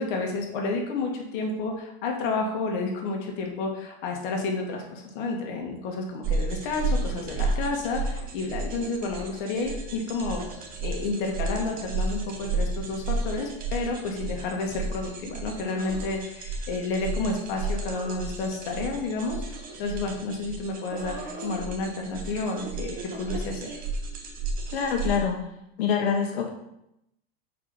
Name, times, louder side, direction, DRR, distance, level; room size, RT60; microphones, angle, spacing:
voice 1, 0.0-10.4 10.8-19.4 19.8-23.8, left 3 dB, 55° left, 1 dB, 1.7 m, -30 dB
sound 1, 6.2-25.2, right 3 dB, 30° right, 1.0 m, -32 dB
voice 2, 24.7-25.4 25.8-26.5, left 6 dB, 75° left, 2 dB, 1.2 m, -25 dB
6.1 x 4.7 x 5.4 m, 0.83 s
supercardioid pair, 155°, 31 cm